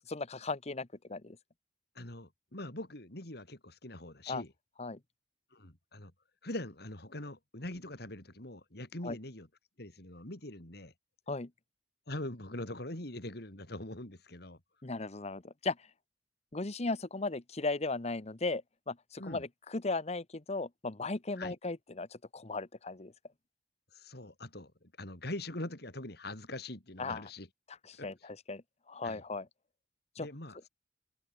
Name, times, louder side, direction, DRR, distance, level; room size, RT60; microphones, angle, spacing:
voice 1, 0.1-1.4 4.3-4.4 4.8-5.0 9.0-9.2 11.3-11.5 14.8-15.8 16.5-23.1 27.0-27.2 27.9-29.5 30.2-30.3, left 3 dB, 40° left, 1.1 m, -37 dB
voice 2, 2.0-4.5 5.5-6.1 6.4-9.5 9.8-10.9 12.1-14.6 19.2-19.4 21.4-21.5 23.9-27.5 28.0-28.3 29.0-29.2 30.2-30.6, left 1 dB, 60° left, 3.9 m, -43 dB
head